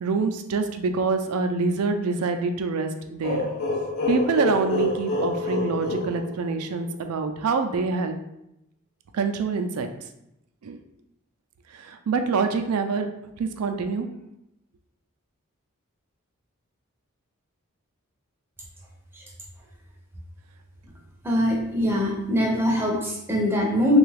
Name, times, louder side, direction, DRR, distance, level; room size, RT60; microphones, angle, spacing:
voice 1, 0.0-3.5 4.1-8.1 9.1-9.9 10.6-10.8 11.7-13.1 13.4-14.1, right 4 dB, 80° right, 6 dB, 0.4 m, -25 dB
sound 1, 3.2-6.9, left 3 dB, 80° left, 0.6 m, -28 dB
voice 2, 21.2-24.0, equal, 10° right, -1 dB, 0.5 m, -22 dB
3.3 x 2.3 x 3.2 m, 0.83 s
head